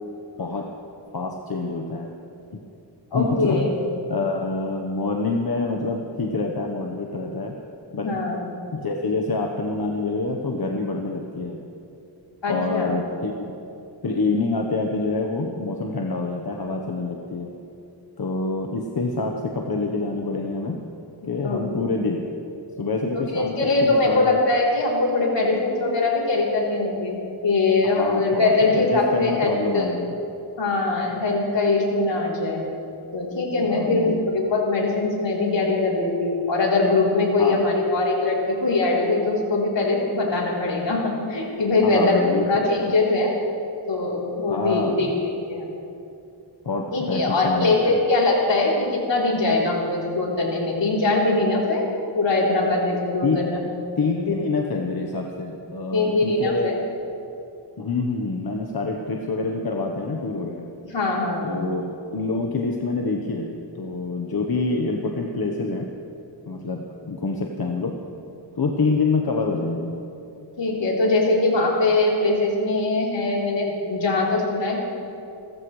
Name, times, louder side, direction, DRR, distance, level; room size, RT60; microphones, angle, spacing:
voice 1, 0.4-0.7 1.1-2.1 2.5-2.6 3.1-3.8 4.1-7.5 7.9-8.2 8.7-11.7 12.5-13.3 14.0-17.5 18.2-20.9 21.2-22.3 22.8-24.4 27.8-30.1 33.6-34.3 37.4-37.6 41.8-42.9 44.5-45.1 46.6-48.0 53.2-53.4 54.0-56.7 57.8-60.6 61.4-65.9 66.5-68.0 68.6-70.0, left 3 dB, 55° left, 1 dB, 1.2 m, -26 dB
voice 2, 3.1-3.7 8.0-8.4 12.4-12.9 21.4-21.6 23.3-29.9 30.6-32.6 33.1-43.3 43.9-45.1 45.3-45.7 46.9-51.8 52.2-53.6 55.9-56.8 60.9-61.7 70.6-74.8, left 2 dB, 75° left, -4 dB, 3.7 m, -22 dB
29.0 x 14.5 x 3.2 m, 2.7 s
wide cardioid pair, 110°, 44 cm